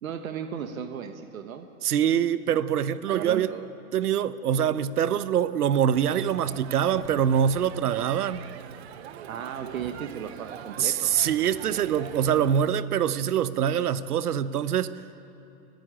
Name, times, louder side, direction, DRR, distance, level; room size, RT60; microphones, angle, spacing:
voice 1, 0.0-1.7 3.1-3.7 9.3-11.2, right 8 dB, 65° right, 7 dB, 1.4 m, -35 dB
voice 2, 1.8-3.5 3.9-8.4 10.8-14.9, right 9 dB, 85° right, 15 dB, 1.0 m, -24 dB
Crowd, 5.9-12.7, right 10 dB, 45° right, 0.8 m, -43 dB
30.0 x 10.5 x 9.0 m, 2.9 s
hypercardioid pair, 165°, 44 cm